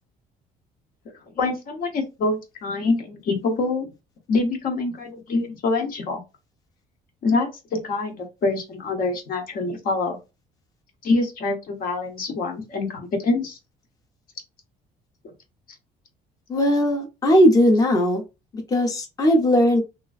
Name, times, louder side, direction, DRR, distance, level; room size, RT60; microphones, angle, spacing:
voice 1, 1.3-3.9 4.3-6.2 7.2-10.2 11.0-13.6 15.2-15.3, left 3 dB, 60° left, 3 dB, 0.9 m, -25 dB
voice 2, 16.5-18.2 18.7-19.8, equal, 20° left, 2 dB, 0.7 m, -18 dB
2.9 x 2.5 x 2.4 m, 0.26 s
cardioid pair, 110°, 17 cm